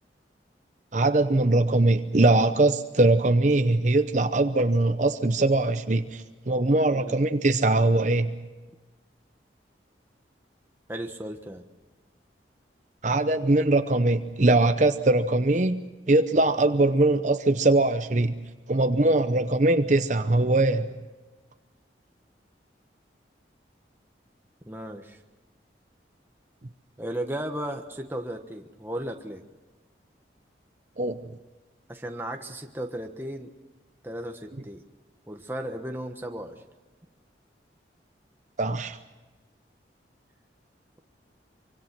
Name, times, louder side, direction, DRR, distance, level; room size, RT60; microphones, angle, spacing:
voice 1, 0.9-8.3 13.0-15.8 16.1-18.4 18.7-20.9 31.0-31.2 38.6-39.0, right 2 dB, 40° right, 0.8 m, -22 dB
voice 2, 6.9-7.3 10.9-11.6 24.6-25.2 27.0-29.4 31.9-33.5 34.0-34.8 35.3-36.6, right 1 dB, 10° right, 1.3 m, -35 dB
25.0 x 25.0 x 6.0 m
head